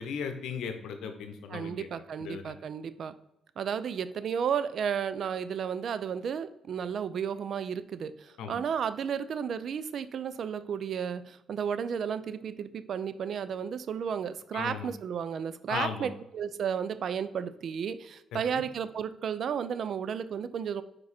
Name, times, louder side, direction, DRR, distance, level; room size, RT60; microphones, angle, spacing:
voice 1, 0.0-1.9 2.2-2.6 8.4-8.5 14.5-14.9 15.7-16.1 18.3-18.6, left 6 dB, 80° left, 7 dB, 0.8 m, -37 dB
voice 2, 1.5-3.1 3.6-8.1 8.5-20.8, right 7 dB, 60° right, 13 dB, 0.4 m, -33 dB
4.9 x 4.7 x 4.2 m, 0.86 s
cardioid pair, 90°, 0 cm